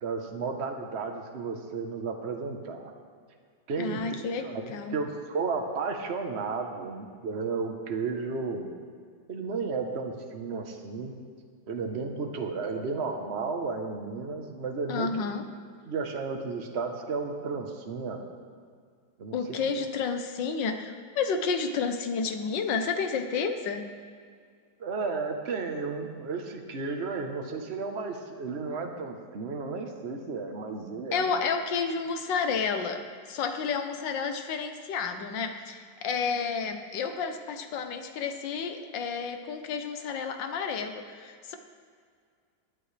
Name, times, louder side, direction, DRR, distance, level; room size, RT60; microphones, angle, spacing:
voice 1, 0.0-2.9 3.7-8.7 9.3-11.1 11.7-15.1 15.8-18.2 19.2-19.4 24.8-31.5, right 4 dB, 40° right, 3 dB, 1.3 m, -33 dB
voice 2, 3.8-4.4 4.7-5.0 14.9-15.4 19.3-23.9 31.1-33.0 33.3-41.6, left 5 dB, 80° left, 7 dB, 1.6 m, -30 dB
19.5 x 11.0 x 3.3 m, 2.1 s
omnidirectional pair, 2.0 m